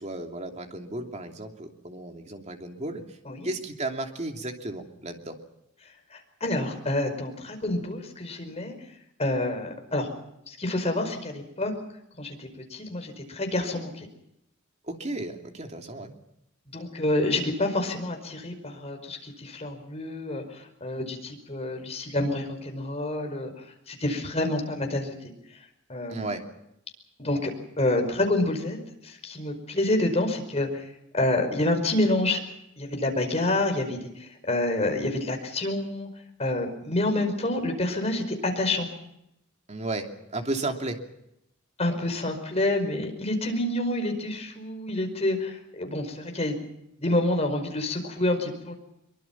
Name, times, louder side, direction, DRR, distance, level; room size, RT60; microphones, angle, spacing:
voice 1, 0.0-3.2 3.4-5.4 14.8-16.1 26.1-26.4 39.7-41.0, right 2 dB, 35° right, 4 dB, 2.8 m, -34 dB
voice 2, 6.1-8.7 9.2-10.1 10.5-11.7 12.2-14.1 16.7-25.1 25.9-26.2 27.2-27.5 27.8-30.9 31.1-32.4 32.8-36.1 36.4-38.9 41.8-46.6 47.0-48.7, left 1 dB, 30° left, 4 dB, 5.1 m, -28 dB
24.0 x 23.5 x 5.9 m, 0.82 s
head